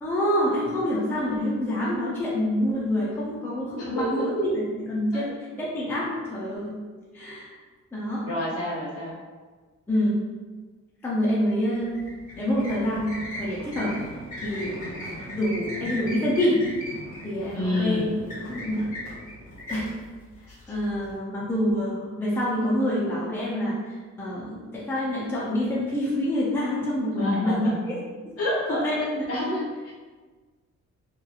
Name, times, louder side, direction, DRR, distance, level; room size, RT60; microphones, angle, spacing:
voice 1, 0.0-6.8 7.1-7.5 7.9-8.3 9.9-10.2 11.0-11.9 12.4-14.0 14.4-14.8 15.3-16.6 17.2-18.1 18.4-18.9 19.7-19.9 20.4-28.0 28.2-28.4 28.7-29.5, equal, 10° left, -7 dB, 0.4 m, -27 dB
voice 2, 3.8-4.3 5.1-5.3 8.3-9.1 17.5-18.1 20.5-20.6 27.2-27.7 28.4-28.9 29.3-29.9, left 1 dB, 55° left, -5 dB, 0.9 m, -28 dB
sound 1, 11.8-21.1, equal, 25° left, 1.4 m, -38 dB
2.9 x 2.3 x 2.4 m, 1.4 s
cardioid pair, 135°, 29 cm